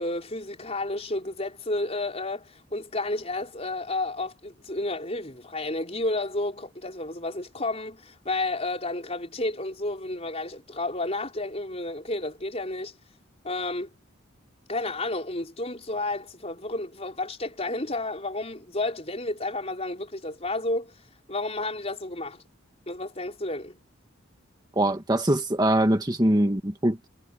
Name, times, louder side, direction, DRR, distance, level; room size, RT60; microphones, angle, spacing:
voice 1, 0.0-12.9 13.4-13.9 14.7-20.9 21.3-22.4 22.9-23.8, left 2 dB, 30° left, 4.7 m, -31 dB
voice 2, 24.8-27.1, right 1 dB, 20° right, 1.7 m, -23 dB
head